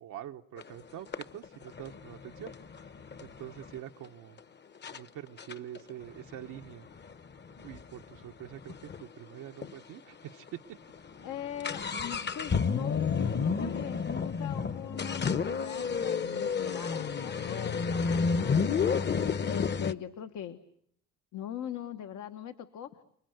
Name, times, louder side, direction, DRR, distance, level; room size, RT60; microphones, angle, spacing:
voice 1, 0.0-2.6 3.2-4.4 4.9-6.9 7.6-10.5, right 12 dB, 85° right, 3 dB, 1.0 m, -45 dB
sound 1, 0.6-0.7 1.1-3.8 4.4-4.5 4.8-5.0 5.4-9.1 9.3-9.4 9.6-9.7 10.3-10.5 10.8-19.9, left 5 dB, 35° left, 0.9 m, -31 dB
voice 2, 11.2-18.6 19.4-20.6 21.3-22.9, left 10 dB, 75° left, 7 dB, 1.3 m, -41 dB
30.0 x 20.5 x 7.9 m, 0.71 s
cardioid pair, 90°, 30 cm